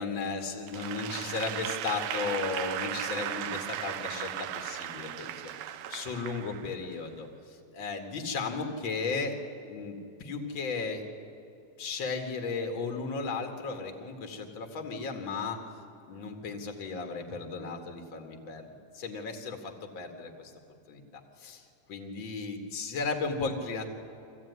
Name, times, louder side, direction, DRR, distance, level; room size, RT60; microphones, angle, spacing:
voice 1, 0.0-9.4 9.7-11.1 11.8-15.6 16.1-20.5 20.9-21.6 21.9-23.9, left 4 dB, 45° left, 4 dB, 2.4 m, -35 dB
Applause / Crowd, 0.7-7.1, right 11 dB, 75° right, 1.9 m, -36 dB
24.5 x 16.0 x 9.5 m, 2.7 s
omnidirectional pair, 3.5 m